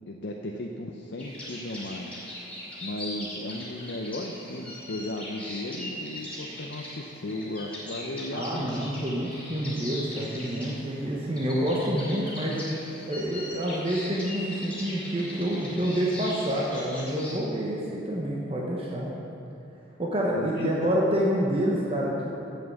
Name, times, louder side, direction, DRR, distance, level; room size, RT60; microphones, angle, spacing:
voice 1, 0.1-2.1 2.8-9.1 20.3-20.7, left 1 dB, 60° left, 1 dB, 0.6 m, -35 dB
sound 1, 1.2-17.3, left 1 dB, 5° left, 2.8 m, -40 dB
voice 2, 8.3-12.6 13.1-19.1 20.0-22.3, equal, 30° right, -3 dB, 0.9 m, -28 dB
7.8 x 7.8 x 8.2 m, 2.8 s
head